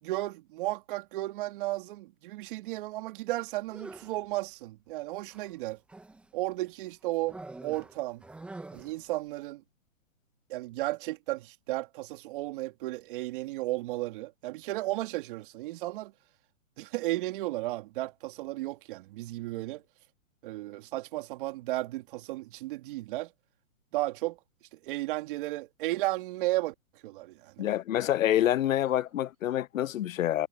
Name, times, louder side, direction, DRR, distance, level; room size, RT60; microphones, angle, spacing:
voice 1, 0.0-5.8 6.3-8.2 8.7-9.6 10.5-16.1 16.8-19.8 20.4-23.3 23.9-24.4 24.7-26.7 27.0-27.6, right 18 dB, 40° right, 3.1 m, -34 dB
sound 1, 3.6-4.2 5.3-6.3 7.3-9.1, right 2 dB, 5° right, 0.9 m, -45 dB
voice 2, 27.6-30.5, left 12 dB, 80° left, 0.6 m, -27 dB
hypercardioid pair, 145°, 40 cm